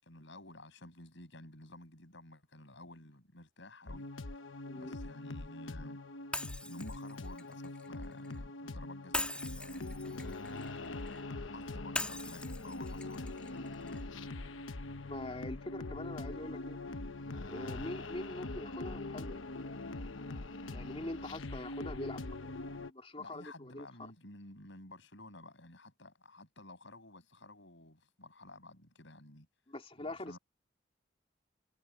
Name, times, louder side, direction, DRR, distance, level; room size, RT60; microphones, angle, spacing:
voice 1, 0.0-4.3 4.7-6.0 6.6-10.1 11.5-14.0 23.2-29.5 30.0-30.4, left 2 dB, 70° left, 7.1 m, -53 dB
sound 1, 3.9-22.9, left 2 dB, 90° left, 1.1 m, -43 dB
voice 2, 4.7-5.0 15.1-16.8 17.5-19.4 20.7-22.5 22.9-23.9 29.7-30.4, left 1 dB, 30° left, 2.8 m, -43 dB
Shatter, 6.3-8.4 9.1-11.2 12.0-14.0, left 2 dB, 5° left, 2.5 m, -41 dB
head